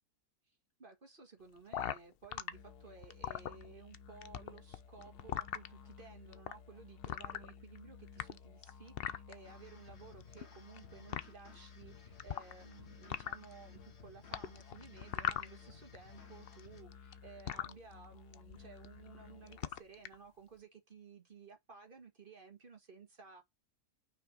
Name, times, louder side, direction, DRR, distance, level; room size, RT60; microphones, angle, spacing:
voice 1, 0.8-23.4, right 5 dB, 35° right, 1.8 m, -56 dB
sound 1, 1.7-2.5 3.0-4.0 4.2-5.7 6.3-6.5 7.0-7.8 8.1-9.3 10.2-10.8 11.1-11.2 12.2-12.7 13.0-13.5 14.3-16.0 16.2-17.7 18.3-18.6 18.8-19.2 19.5-20.1, left 10 dB, 65° left, 0.5 m, -39 dB
sound 2, 2.5-19.8, left 6 dB, 90° left, 1.6 m, -56 dB
sound 3, 9.4-16.8, left 4 dB, 45° left, 1.7 m, -60 dB
5.9 x 4.5 x 3.6 m
omnidirectional pair, 1.6 m